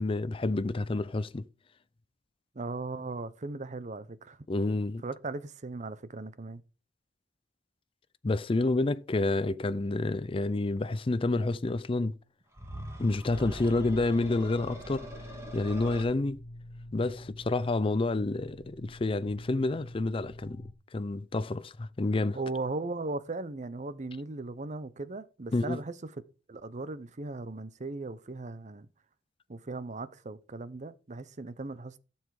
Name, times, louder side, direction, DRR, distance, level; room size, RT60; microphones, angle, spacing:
voice 1, 0.0-1.4 4.5-5.0 8.2-12.1 13.0-15.1 15.5-16.4 16.9-20.6 20.9-22.4 25.5-25.8, left 2 dB, 30° left, 0.5 m, -29 dB
voice 2, 2.5-4.4 5.0-6.6 22.3-26.1 26.5-28.9 29.5-32.0, right 3 dB, 40° right, 0.7 m, -38 dB
sound 1, 12.5-16.0, right 1 dB, 15° right, 3.1 m, -43 dB
sound 2, 13.6-20.7, left 1 dB, 65° left, 1.2 m, -47 dB
12.5 x 7.2 x 4.8 m
head